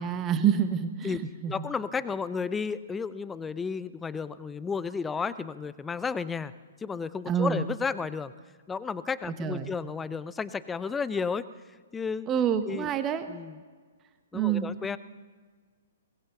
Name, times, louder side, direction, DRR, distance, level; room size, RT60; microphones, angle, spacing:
voice 1, 0.0-1.5 7.3-7.6 9.3-9.7 12.3-13.3 14.3-14.7, right 8 dB, 20° right, 9 dB, 1.2 m, -27 dB
voice 2, 1.5-6.5 6.8-8.3 8.7-11.5 11.9-12.3 12.7-12.9 13.3-13.5 14.3-15.0, left 5 dB, 10° left, 16 dB, 0.6 m, -32 dB
22.0 x 19.0 x 6.9 m, 1.5 s
figure-of-eight pair, 120°, 0 cm